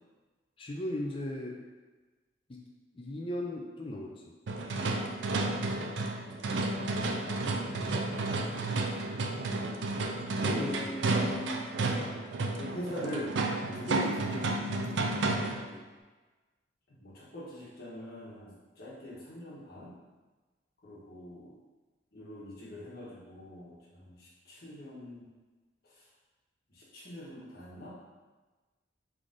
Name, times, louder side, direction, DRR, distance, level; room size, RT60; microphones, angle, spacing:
voice 1, 0.6-1.6 2.5-2.6 2.9-4.3 8.8-9.2 10.4-11.0 15.7-15.9, left 1 dB, 30° left, -1 dB, 0.4 m, -38 dB
sound 1, 4.5-15.7, right 2 dB, 80° right, 0.4 m, -32 dB
voice 2, 4.7-5.1 6.2-8.3 10.4-11.6 12.6-13.4 13.7-15.2 16.9-19.9 20.8-21.5 22.1-25.3 25.9-26.0 26.7-28.0, left 1 dB, 55° left, -6 dB, 1.2 m, -43 dB
3.7 x 3.3 x 3.8 m, 1.3 s
head